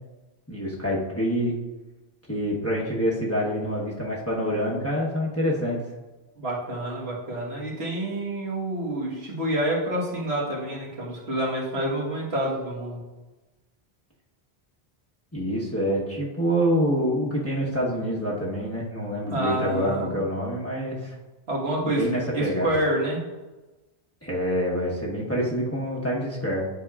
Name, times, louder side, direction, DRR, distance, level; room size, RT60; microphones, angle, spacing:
voice 1, 0.5-1.5 2.3-5.8 15.3-21.1 21.8-22.7 24.2-26.7, equal, 15° left, -5 dB, 1.0 m, -26 dB
voice 2, 6.3-13.0 19.3-20.2 21.5-22.1 22.3-23.2, right 1 dB, 80° right, -5 dB, 1.8 m, -28 dB
9.9 x 4.5 x 2.4 m, 1.2 s
omnidirectional pair, 1.1 m